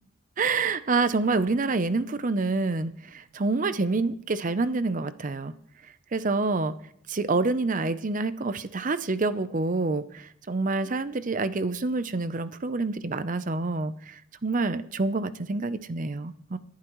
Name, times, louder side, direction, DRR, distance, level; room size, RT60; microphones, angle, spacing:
voice 1, 0.4-5.5 6.1-6.7 7.1-16.6, right 3 dB, 40° right, 13 dB, 0.6 m, -27 dB
27.5 x 11.5 x 3.1 m, 0.72 s
head